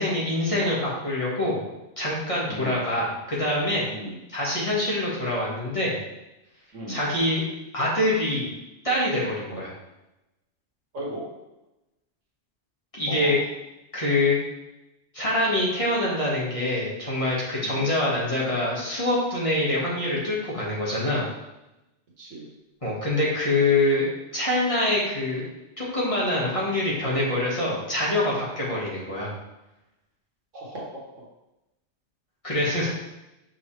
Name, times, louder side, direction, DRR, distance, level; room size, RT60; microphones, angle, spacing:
voice 1, 0.0-1.6 2.0-3.9 4.3-6.0 6.9-7.4 7.7-8.5 8.8-9.7 12.9-13.4 13.9-14.4 15.1-21.3 22.8-24.0 24.3-25.4 25.8-29.3 32.4-32.9, left 1 dB, 25° left, -7 dB, 2.0 m, -25 dB
voice 2, 2.5-2.9 3.9-4.2 6.7-7.1 9.5-9.6 10.9-11.3 13.1-13.4 17.6-17.9 22.2-22.5 28.6-28.8 30.5-30.8, right 1 dB, 85° right, -4 dB, 2.1 m, -37 dB
6.2 x 5.9 x 3.4 m, 0.95 s
omnidirectional pair, 1.3 m